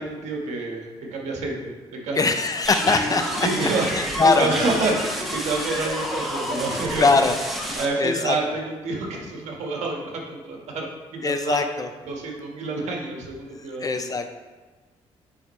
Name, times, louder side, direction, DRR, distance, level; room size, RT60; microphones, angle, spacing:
voice 1, 0.0-2.3 2.9-3.1 3.4-7.1 7.6-10.9 11.1-11.6 12.1-14.1, right 3 dB, 75° right, -1 dB, 1.5 m, -28 dB
voice 2, 2.2-3.5 3.9-4.5 6.9-7.4 8.0-8.4 11.2-11.9 13.6-14.3, left 4 dB, 30° left, 7 dB, 0.6 m, -21 dB
sound 1, 2.6-7.9, equal, ahead, 1.2 m, -29 dB
7.0 x 5.5 x 3.2 m, 1.3 s
cardioid pair, 80°, 12 cm